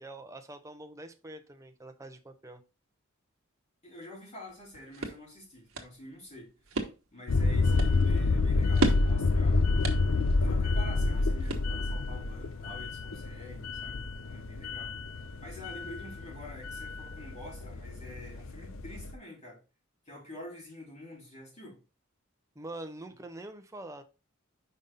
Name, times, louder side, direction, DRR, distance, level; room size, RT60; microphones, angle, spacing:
voice 1, 0.0-2.6 22.6-24.0, right 2 dB, 15° right, 0.8 m, -44 dB
voice 2, 3.8-9.7 10.4-14.9 15.4-19.6 20.1-21.8, left 1 dB, 35° left, 3.4 m, -47 dB
sound 1, 4.5-12.1, right 2 dB, 75° right, 1.3 m, -37 dB
sound 2, 7.3-19.1, left 3 dB, 70° left, 0.6 m, -28 dB
5.4 x 5.1 x 4.1 m
head